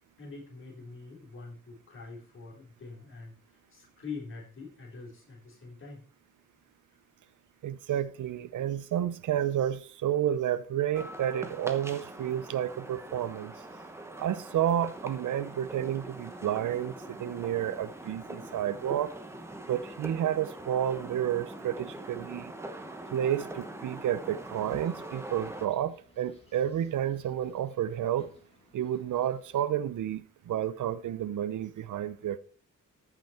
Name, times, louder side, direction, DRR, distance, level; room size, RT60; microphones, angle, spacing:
voice 1, 0.2-6.0, left 4 dB, 40° left, 3.8 m, -45 dB
voice 2, 7.6-13.5 14.2-19.1 19.7-22.5 23.1-28.3 28.7-32.4, right 10 dB, 75° right, 0.6 m, -30 dB
sound 1, 10.9-25.7, right 1 dB, 10° right, 1.0 m, -43 dB
sound 2, 24.4-29.7, left 2 dB, 20° left, 2.1 m, -57 dB
14.5 x 6.0 x 4.4 m
wide cardioid pair, 175°, 31 cm